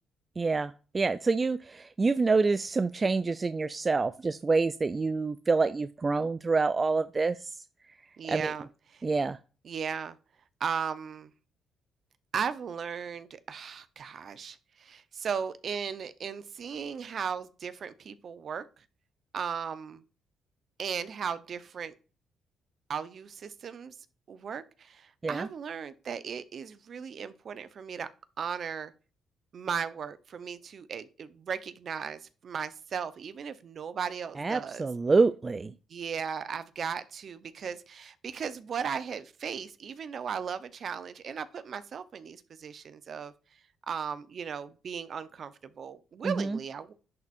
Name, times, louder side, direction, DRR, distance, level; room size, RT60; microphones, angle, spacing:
voice 1, 0.4-7.6 8.3-8.5 9.0-9.4 25.2-25.5 34.4-35.7 46.2-46.6, right 4 dB, 30° right, 0.4 m, -27 dB
voice 2, 8.2-8.7 8.9-9.0 9.6-10.2 10.6-11.3 12.3-18.8 19.3-20.0 20.8-21.9 22.9-23.9 24.3-28.1 28.4-28.9 29.5-34.9 35.9-43.3 43.9-46.9, right 7 dB, 55° right, 0.7 m, -36 dB
10.5 x 4.2 x 2.5 m
cardioid pair, 90°, 0 cm